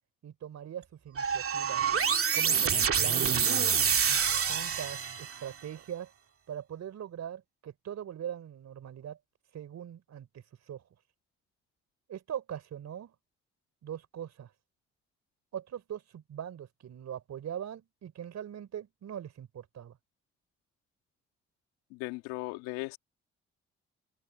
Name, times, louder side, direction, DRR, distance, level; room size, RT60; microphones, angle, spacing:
voice 1, 0.2-1.8 2.3-3.4 4.4-6.1 6.5-9.2 9.5-10.8 12.1-13.1 13.8-14.5 15.5-20.0, right 9 dB, 65° right, 4.1 m, -41 dB
sound 1, 1.2-5.5, right 7 dB, 50° right, 2.3 m, -27 dB
voice 2, 21.9-23.0, left 23 dB, 90° left, 3.1 m, -37 dB
open air
hypercardioid pair, 50°, 30 cm